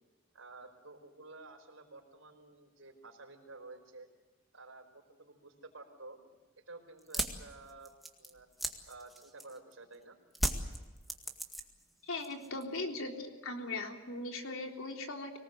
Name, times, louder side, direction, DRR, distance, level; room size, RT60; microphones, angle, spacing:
voice 1, 0.3-4.1 4.5-6.2 6.6-8.5 8.9-10.2, right 3 dB, 85° right, 3 dB, 4.8 m, -52 dB
sound 1, 7.0-9.7 10.3-11.9 12.2-12.8, right 1 dB, ahead, 1.9 m, -36 dB
voice 2, 12.0-15.4, left 2 dB, 80° left, 3 dB, 3.7 m, -39 dB
25.0 x 19.0 x 8.0 m, 1.2 s
head